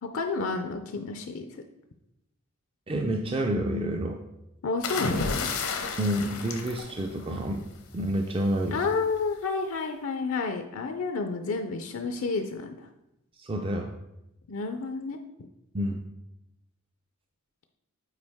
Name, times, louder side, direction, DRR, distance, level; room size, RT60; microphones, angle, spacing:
voice 1, 0.0-1.6 4.6-5.5 8.7-12.9 14.5-15.2, left 4 dB, 65° left, 6 dB, 0.5 m, -30 dB
voice 2, 2.9-4.2 6.0-7.7 7.9-8.8 13.4-13.9 15.7-16.0, right 1 dB, 25° right, 3 dB, 0.4 m, -29 dB
sound 1, 4.8-7.6 8.8-9.1, left 4 dB, 85° left, 0.9 m, -31 dB
8.1 x 4.6 x 3.5 m, 0.88 s
head